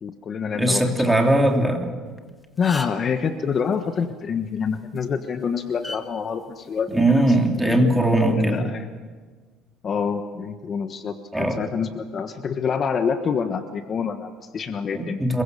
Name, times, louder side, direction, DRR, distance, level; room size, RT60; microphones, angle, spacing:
voice 1, 0.0-0.8 2.6-7.3 7.6-7.9 8.3-8.8 9.8-15.2, left 6 dB, 35° left, 7 dB, 1.3 m, -27 dB
voice 2, 0.5-1.9 6.9-8.7 11.3-11.6 14.9-15.4, right 1 dB, 5° right, 2 dB, 3.2 m, -20 dB
sound 1, 2.1-2.2 2.4-3.1 4.8-5.0 5.8-6.0 7.0-7.3, left 2 dB, 10° left, 2.0 m, -34 dB
27.5 x 23.0 x 6.9 m, 1.5 s
cardioid pair, 125°, 0 cm